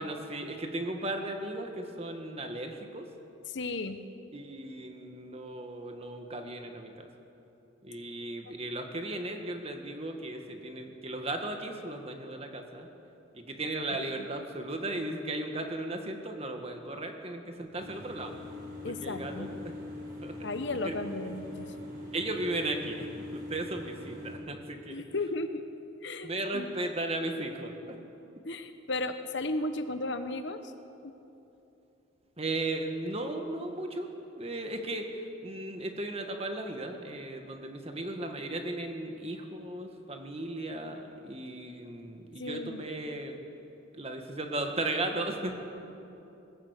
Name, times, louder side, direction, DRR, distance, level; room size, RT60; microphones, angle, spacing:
voice 1, 0.0-3.1 4.3-7.1 7.8-12.9 13.3-18.3 18.9-19.7 20.2-20.4 20.8-20.9 21.2-21.4 22.1-23.1 23.3-25.0 26.2-28.0 32.4-34.1 34.4-35.1 35.4-43.4 43.9-45.6, right 2 dB, 30° right, 4 dB, 1.8 m, -36 dB
voice 2, 3.5-4.0 18.8-19.5 20.4-21.7 24.9-25.6 26.0-26.8 28.4-30.7 31.0-31.1 42.4-42.8, left 2 dB, 60° left, 9 dB, 1.1 m, -35 dB
sound 1, 17.8-24.4, left 2 dB, 45° right, 6.0 m, -42 dB
20.5 x 17.0 x 8.3 m, 2.9 s
head